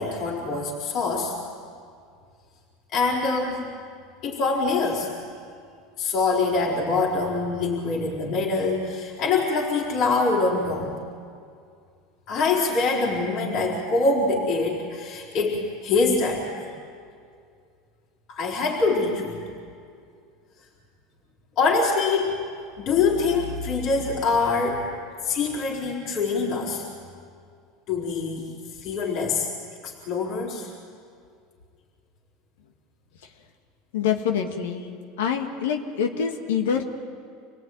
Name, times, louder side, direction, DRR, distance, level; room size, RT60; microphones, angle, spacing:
voice 1, 0.0-1.4 2.9-3.6 4.2-5.1 6.0-10.9 12.3-16.7 18.3-19.4 21.6-22.4 22.8-24.9 25.2-26.9 27.9-28.5 28.8-29.5 29.8-30.7, left 3 dB, 50° left, -3 dB, 4.2 m, -24 dB
voice 2, 33.9-34.8 35.2-36.8, left 7 dB, 90° left, 4 dB, 1.9 m, -25 dB
27.5 x 18.5 x 9.4 m, 2.3 s
supercardioid pair, 120°, 0 cm